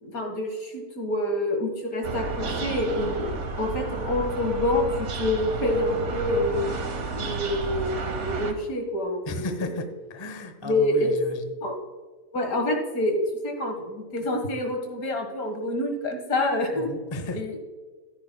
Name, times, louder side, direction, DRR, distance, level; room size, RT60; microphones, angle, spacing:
voice 1, 0.0-3.2 3.6-6.8 7.1-9.7 10.6-11.2 11.6-11.8 12.3-16.9 17.3-17.6, left 1 dB, 70° left, 4 dB, 2.1 m, -27 dB
sound 1, 2.0-8.5, right 3 dB, 55° right, 1.4 m, -31 dB
voice 2, 9.3-11.4 16.8-17.4, left 2 dB, 25° left, 7 dB, 0.6 m, -34 dB
14.5 x 9.6 x 2.3 m, 1.4 s
omnidirectional pair, 1.6 m